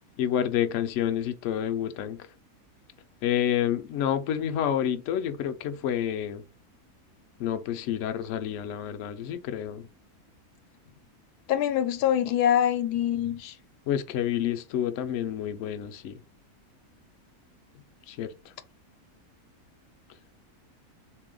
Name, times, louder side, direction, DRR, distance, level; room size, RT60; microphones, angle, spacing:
voice 1, 0.2-2.2 3.2-6.4 7.4-9.9 13.9-16.1 18.1-18.3, left 10 dB, 65° left, 0.8 m, -29 dB
voice 2, 11.5-13.5, left 10 dB, 85° left, 1.1 m, -24 dB
3.6 x 2.7 x 3.7 m
omnidirectional pair, 1.6 m